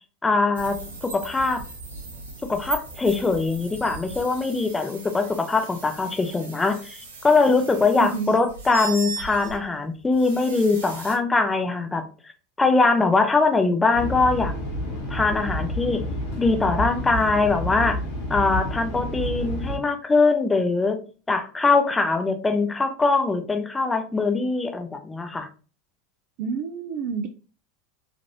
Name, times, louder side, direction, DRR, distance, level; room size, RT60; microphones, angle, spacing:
voice 1, 0.2-1.6 2.5-12.1 12.6-14.5 15.1-16.0 16.4-18.0 18.3-21.0 21.3-25.5, left 3 dB, 15° left, 0.5 m, -22 dB
sound 1, 0.5-11.1, right 3 dB, 80° right, 0.7 m, -38 dB
voice 2, 8.0-8.4 26.4-27.3, right 5 dB, 55° right, 0.3 m, -29 dB
sound 2, 13.9-19.8, equal, 65° left, 1.3 m, -29 dB
3.2 x 2.5 x 2.6 m
hypercardioid pair, 80°, 0 cm